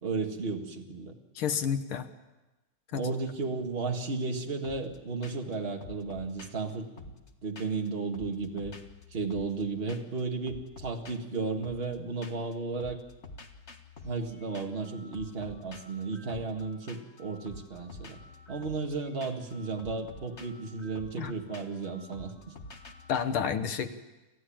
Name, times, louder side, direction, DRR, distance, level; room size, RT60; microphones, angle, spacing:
voice 1, 0.0-1.1 2.9-6.9 7.4-8.7 9.1-13.0 14.0-18.2 18.5-22.5, right 3 dB, 25° right, 3 dB, 2.0 m, -34 dB
voice 2, 1.4-2.1 2.9-3.1 21.2-21.3 23.1-23.9, left 7 dB, 75° left, 9 dB, 2.0 m, -30 dB
sound 1, 4.6-5.0 5.2-5.5 5.8-7.9 8.1-9.6 9.9-10.2 10.5-12.5 12.8-23.2, left 2 dB, 35° left, 1.7 m, -49 dB
28.5 x 14.5 x 8.8 m, 1.1 s
omnidirectional pair, 2.4 m